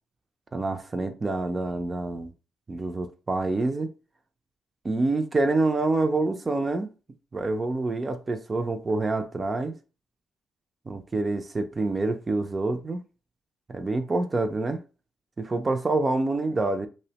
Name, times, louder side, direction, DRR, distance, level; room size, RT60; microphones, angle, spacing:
voice 1, 0.5-2.3 2.7-3.9 4.8-6.9 7.3-9.8 10.9-13.0 13.7-14.8 15.4-16.9, right 2 dB, 30° right, 0.3 m, -27 dB
2.6 x 2.0 x 2.8 m
cardioid pair, 90°, 0 cm